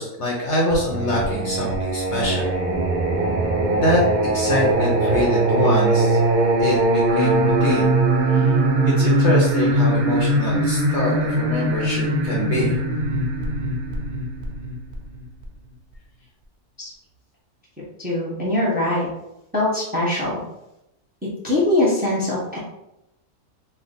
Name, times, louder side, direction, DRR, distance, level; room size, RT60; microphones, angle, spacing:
voice 1, 0.0-2.5 3.8-4.0 4.3-6.2 6.6-7.9 8.3-8.4 8.8-12.8, left 1 dB, 55° left, -3 dB, 0.9 m, -24 dB
Singing, 0.7-15.4, right 2 dB, 85° right, 0.4 m, -21 dB
voice 2, 18.0-19.1 19.5-20.4 21.4-22.6, left 1 dB, 10° right, -6 dB, 0.7 m, -21 dB
3.3 x 2.5 x 3.9 m, 0.87 s
omnidirectional pair, 1.6 m